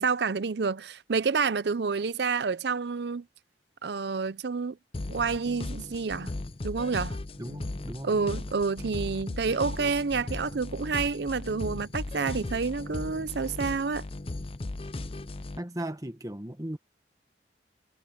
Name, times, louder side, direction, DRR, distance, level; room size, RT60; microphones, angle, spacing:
voice 1, 0.0-3.2 3.8-4.8 5.1-6.3 6.6-7.2 8.0-14.1, right 5 dB, 65° right, 0.6 m, -29 dB
sound 1, 4.9-15.6, left 2 dB, 30° left, 0.6 m, -37 dB
voice 2, 7.4-8.1 15.6-16.8, right 1 dB, 20° right, 1.5 m, -36 dB
head